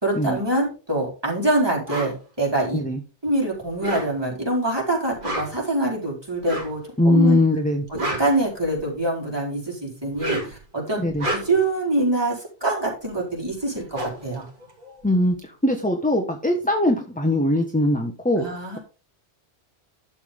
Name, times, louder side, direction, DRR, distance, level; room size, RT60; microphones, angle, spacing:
voice 1, 0.0-2.8 3.2-7.4 7.9-14.5 18.4-18.8, right 1 dB, 20° right, -3 dB, 4.5 m, -25 dB
sound 1, 1.9-2.2 3.7-4.4 5.1-5.7 6.4-6.8 7.7-9.0 10.0-10.6 11.1-11.7 13.3-13.4 13.6-15.3, right 1 dB, 45° right, 3.0 m, -31 dB
voice 2, 7.0-7.8 11.0-11.3 15.0-18.5, left 1 dB, 5° left, 3 dB, 1.2 m, -21 dB
11.5 x 7.3 x 3.6 m, 0.33 s
omnidirectional pair, 1.2 m